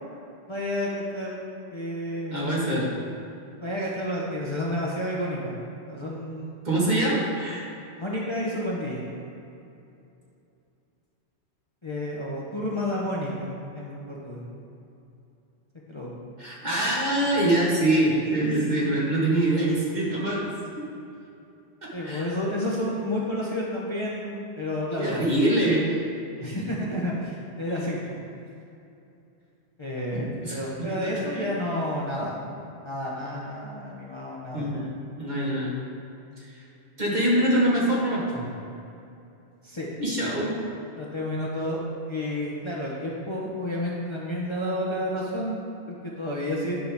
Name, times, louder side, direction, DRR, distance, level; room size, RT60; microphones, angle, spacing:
voice 1, 0.5-1.4 1.7-2.6 3.6-5.5 5.9-6.6 8.0-9.1 11.8-14.4 15.9-16.1 21.9-25.3 26.4-28.0 29.8-32.4 32.8-34.7 39.6-39.9 40.4-40.5 41.0-41.8 42.1-46.8, left 1 dB, 30° left, -5 dB, 0.8 m, -30 dB
voice 2, 2.3-2.9 6.6-7.6 16.4-20.4 21.8-22.2 25.0-26.1 27.7-27.8 30.1-30.6 31.0-31.5 34.5-34.9 35.2-35.8 36.4-36.6 37.0-38.5 40.0-40.5, right 1 dB, 45° right, -6 dB, 1.7 m, -24 dB
10.0 x 5.6 x 3.5 m, 2.7 s
omnidirectional pair, 1.1 m